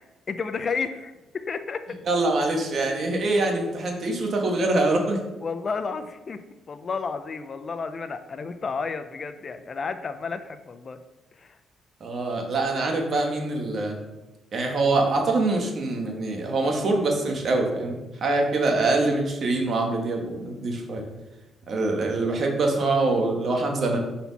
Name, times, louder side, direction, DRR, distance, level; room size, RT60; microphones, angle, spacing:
voice 1, 0.0-1.8 5.4-11.0 11.3-11.6, left 5 dB, 40° left, 9 dB, 0.5 m, -32 dB
voice 2, 2.1-5.2 12.0-14.0 14.5-21.0 21.7-24.0, right 2 dB, 50° right, 2 dB, 1.4 m, -24 dB
5.6 x 4.3 x 4.1 m, 1.1 s
cardioid pair, 90°, 0 cm